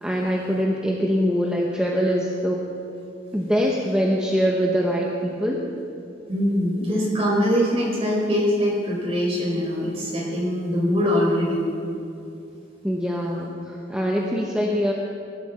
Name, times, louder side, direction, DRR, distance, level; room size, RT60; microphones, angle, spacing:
voice 1, 0.0-2.6 3.3-5.7 12.8-14.9, equal, 5° right, -2 dB, 0.9 m, -23 dB
voice 2, 6.3-11.6, equal, 30° right, -4 dB, 4.3 m, -22 dB
20.0 x 12.0 x 4.2 m, 2.6 s
head